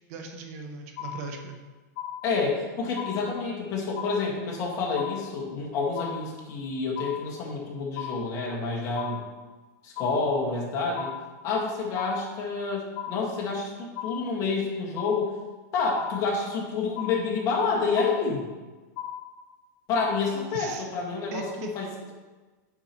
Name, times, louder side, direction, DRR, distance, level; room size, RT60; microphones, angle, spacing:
voice 1, 0.1-1.6 20.5-20.9 21.3-21.7, right 4 dB, 55° right, 4 dB, 0.8 m, -38 dB
sound 1, 1.0-1.6 2.0-2.6 3.0-3.6 4.0-4.6 5.0-5.6 6.0-6.6 7.0-7.6 8.0-8.6 9.0-9.6 10.0-10.6 11.0-11.6 12.0-12.6 12.9-13.6 13.9-14.6 15.0-15.6 16.0-16.6 17.0-17.6 18.0-18.6 19.0-19.6 20.0-20.6, left 11 dB, 60° left, 0.6 m, -38 dB
voice 2, 2.2-9.2 9.8-11.1 11.4-15.3 15.7-18.4 19.9-22.1, left 4 dB, 35° left, -2 dB, 1.5 m, -28 dB
6.8 x 5.7 x 2.9 m, 1.3 s
supercardioid pair, 140°, 10 cm